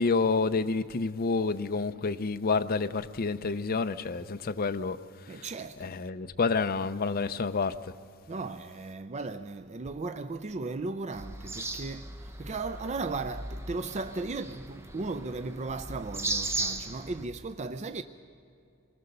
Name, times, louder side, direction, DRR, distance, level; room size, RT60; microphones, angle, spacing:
voice 1, 0.0-5.0 5.8-7.8, left 4 dB, 45° left, 0.6 m, -28 dB
voice 2, 5.3-6.0 8.3-18.0, right 3 dB, 30° right, 0.5 m, -36 dB
sound 1, 11.1-17.3, right 2 dB, 10° right, 0.9 m, -37 dB
26.5 x 20.0 x 6.7 m
head